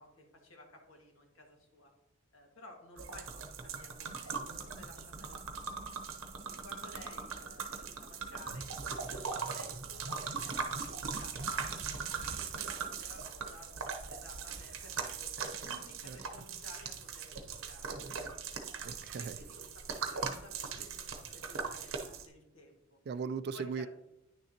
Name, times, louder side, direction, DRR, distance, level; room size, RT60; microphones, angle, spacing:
voice 1, 0.0-1.9 2.3-5.4 6.5-8.7 9.1-15.3 15.6-18.4 19.2-23.0 23.5-23.9, left 1 dB, 80° left, 1 dB, 1.8 m, -56 dB
sound 1, 3.0-22.2, right 5 dB, 75° right, 0.9 m, -40 dB
voice 2, 18.8-19.4 23.1-23.9, right 5 dB, 55° right, 14 dB, 0.3 m, -38 dB
9.7 x 6.6 x 2.9 m, 0.83 s
head